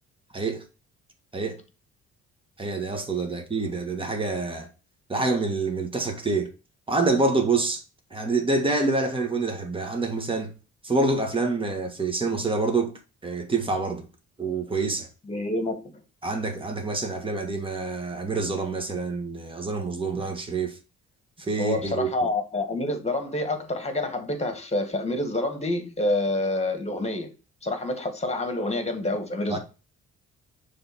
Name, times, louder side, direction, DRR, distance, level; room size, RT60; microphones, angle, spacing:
voice 1, 0.3-0.6 1.3-1.6 2.6-4.7 5.1-6.5 6.9-7.8 8.1-10.5 10.8-12.9 13.2-14.0 14.4-15.1 16.2-20.7 21.4-22.3 29.5-29.6, right 3 dB, 15° right, 1.6 m, -27 dB
voice 2, 15.3-15.9 21.6-27.3 27.6-29.6, left 2 dB, 20° left, 1.7 m, -27 dB
6.7 x 3.5 x 4.2 m
cardioid pair, 90°, 30 cm